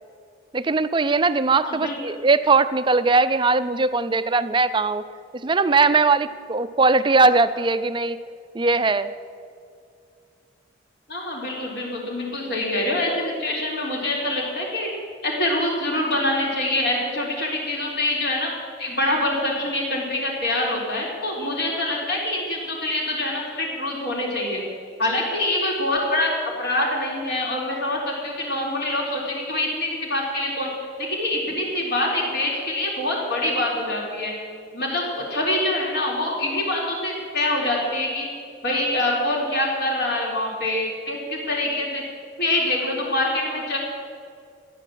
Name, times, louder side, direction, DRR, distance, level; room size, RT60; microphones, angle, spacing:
voice 1, 0.5-5.0 5.4-8.2 8.5-9.1, right 3 dB, 25° right, 13 dB, 0.5 m, -20 dB
voice 2, 1.6-1.9 11.1-14.9 15.2-18.5 18.8-24.6 25.0-30.7 31.0-34.3 34.7-38.3 38.6-42.0 42.4-43.8, left 1 dB, 60° left, -2 dB, 3.9 m, -25 dB
14.5 x 10.5 x 7.6 m, 2.3 s
head